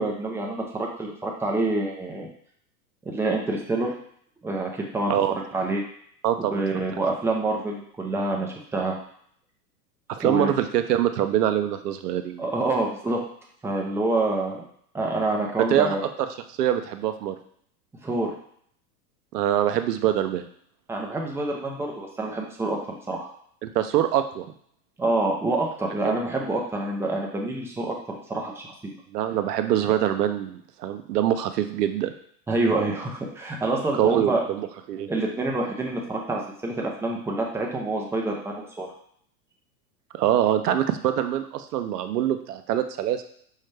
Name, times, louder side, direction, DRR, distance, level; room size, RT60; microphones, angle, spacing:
voice 1, 0.0-2.3 3.0-3.9 4.4-5.1 5.5-5.8 6.4-9.0 10.2-10.5 12.4-13.2 13.6-14.7 14.9-16.0 18.0-18.3 20.9-23.3 25.0-28.9 32.5-34.4 35.1-38.9, right 2 dB, 5° right, -1 dB, 0.5 m, -27 dB
voice 2, 6.2-6.6 10.1-12.5 15.7-16.0 16.6-17.4 19.3-20.5 23.6-24.5 26.0-26.2 29.1-32.1 34.0-35.1 40.1-43.2, right 11 dB, 85° right, 8 dB, 0.6 m, -24 dB
5.5 x 2.1 x 3.2 m, 0.64 s
hypercardioid pair, 115°, 46 cm